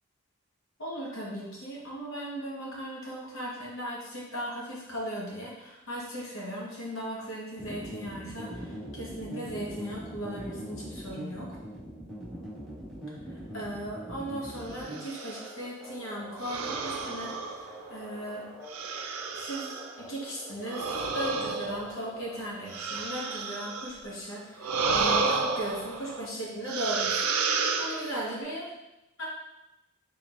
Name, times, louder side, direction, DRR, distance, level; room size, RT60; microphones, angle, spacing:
voice 1, 0.8-11.5 13.5-18.4 19.3-19.7 20.0-28.7 29.2-29.3, right 1 dB, 70° left, -4 dB, 1.2 m, -37 dB
sound 1, 7.6-22.4, right 1 dB, ahead, 1.1 m, -43 dB
sound 2, 14.8-15.5 16.4-18.0 18.7-19.9 20.6-24.0 24.6-26.3 26.7-28.4, right 4 dB, 90° right, 0.4 m, -31 dB
4.3 x 3.6 x 2.5 m, 0.94 s
head